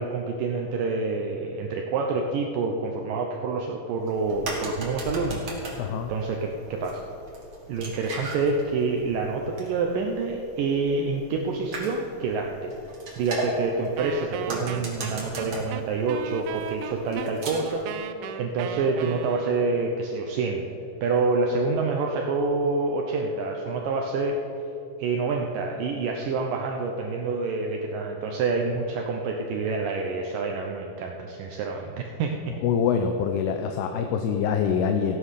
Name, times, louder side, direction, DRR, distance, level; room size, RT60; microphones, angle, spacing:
voice 1, 0.0-7.0 7.7-12.7 13.2-20.6 21.0-24.4 25.0-32.3, right 4 dB, 70° right, 1 dB, 2.2 m, -27 dB
sound 1, 4.0-17.9, right 2 dB, 35° right, 2.4 m, -38 dB
voice 2, 5.8-6.1 32.6-35.2, left 7 dB, 85° left, 5 dB, 2.7 m, -25 dB
Wind instrument woodwind instrument, 14.0-19.8, right 9 dB, 90° right, 2.7 m, -36 dB
15.5 x 9.4 x 6.5 m, 2.9 s
omnidirectional pair, 4.6 m